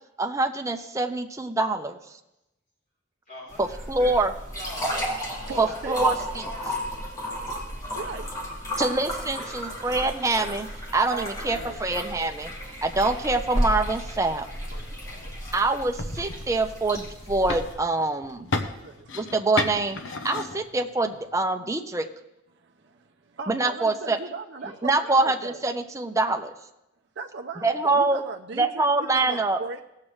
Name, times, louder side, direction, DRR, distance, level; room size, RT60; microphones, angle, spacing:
voice 1, 0.2-2.0 3.6-4.3 5.6-6.1 8.8-10.7 10.9-12.5 12.8-14.5 15.5-18.5 19.1-20.0 20.2-22.1 23.5-24.2 24.8-26.5 27.6-28.2 28.6-29.6, right 2 dB, 15° right, 4 dB, 0.6 m, -25 dB
voice 2, 3.3-4.2 4.5-5.0 5.4-6.8 9.4-10.3 11.4-11.8 15.1-15.6 24.6-24.8, left 1 dB, 40° left, -7 dB, 4.0 m, -45 dB
sound 1, 3.5-17.7, equal, 15° left, 2.0 m, -33 dB
voice 3, 5.3-6.1 8.0-8.3 11.1-11.8 18.8-19.1 22.6-25.6 27.2-29.8, right 4 dB, 60° right, 3 dB, 0.5 m, -37 dB
sound 2, 13.4-21.3, left 3 dB, 70° left, 0.8 m, -36 dB
18.0 x 7.5 x 3.2 m, 0.91 s
head